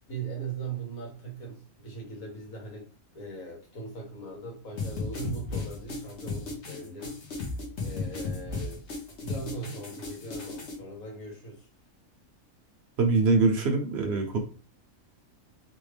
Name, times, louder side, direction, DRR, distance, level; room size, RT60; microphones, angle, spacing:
voice 1, 0.1-2.9 3.1-7.5 7.8-8.8 9.2-11.7, right 4 dB, 85° left, -1 dB, 1.7 m, -39 dB
sound 1, 4.8-10.7, left 3 dB, 55° left, 1.2 m, -35 dB
voice 2, 13.0-14.4, right 3 dB, 60° right, 4 dB, 0.8 m, -23 dB
3.5 x 2.3 x 3.2 m, 0.38 s
omnidirectional pair, 1.4 m